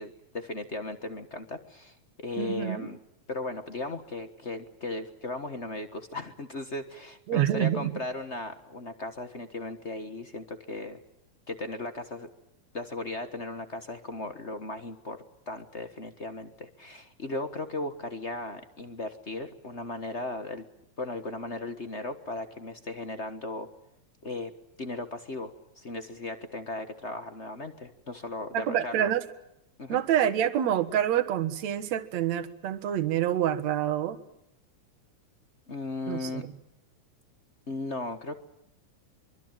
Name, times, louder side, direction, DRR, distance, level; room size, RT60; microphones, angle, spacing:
voice 1, 0.0-3.0 3.3-11.0 11.5-12.3 12.7-20.7 21.0-23.7 24.2-24.5 24.8-29.1 29.8-30.0 35.7-36.5 37.7-38.4, left 2 dB, 45° left, 9 dB, 0.8 m, -37 dB
voice 2, 2.4-2.9 7.3-8.0 28.5-29.2 29.9-34.2 36.1-36.5, right 11 dB, 65° right, 8 dB, 2.6 m, -27 dB
24.5 x 24.0 x 9.0 m, 0.83 s
omnidirectional pair, 3.5 m